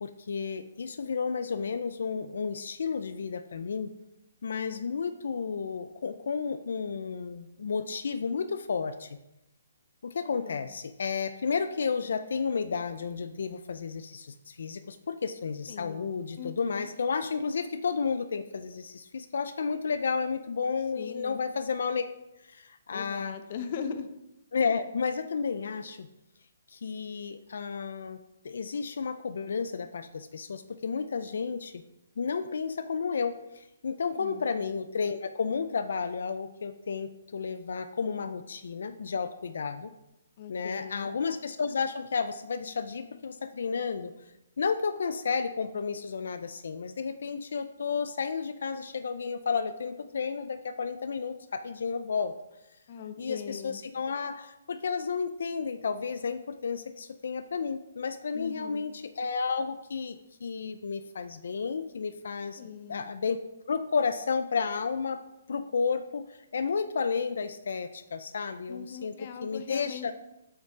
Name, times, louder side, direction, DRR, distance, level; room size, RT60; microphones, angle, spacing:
voice 1, 0.0-3.9 4.4-9.2 10.0-22.0 22.4-23.4 24.5-26.1 26.7-31.8 32.2-39.9 40.5-44.1 44.6-52.3 53.2-62.6 62.9-63.4 63.6-65.2 65.5-69.1 69.4-70.1, left 5 dB, 70° left, 10 dB, 0.5 m, -32 dB
voice 2, 10.2-10.7 15.7-16.9 20.9-21.4 22.9-24.1 34.0-34.5 40.4-41.1 52.9-53.8 58.3-58.9 62.6-63.1 68.7-70.1, left 6 dB, 35° left, 8 dB, 0.8 m, -40 dB
7.4 x 5.9 x 4.7 m, 0.88 s
hypercardioid pair, 170°, 0 cm